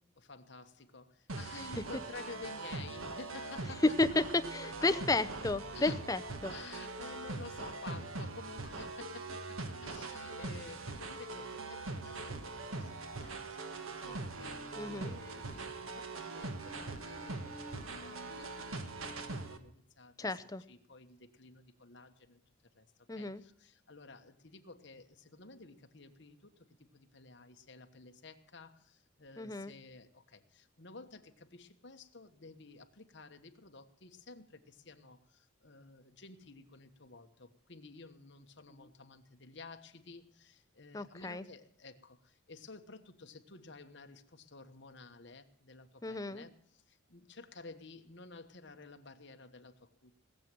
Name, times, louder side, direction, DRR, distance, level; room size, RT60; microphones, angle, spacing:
voice 1, 0.2-4.0 4.8-4.9 5.7-6.1 6.5-20.4 20.7-22.4 22.7-50.1, left 3 dB, 55° left, 1.3 m, -53 dB
sound 1, 1.3-19.6, right 3 dB, 85° right, 1.4 m, -42 dB
voice 2, 3.8-6.5 14.8-15.1 20.2-20.6 23.1-23.4 29.4-29.7 40.9-41.4 46.0-46.4, left 2 dB, 15° left, 0.6 m, -32 dB
18.5 x 7.6 x 7.6 m
head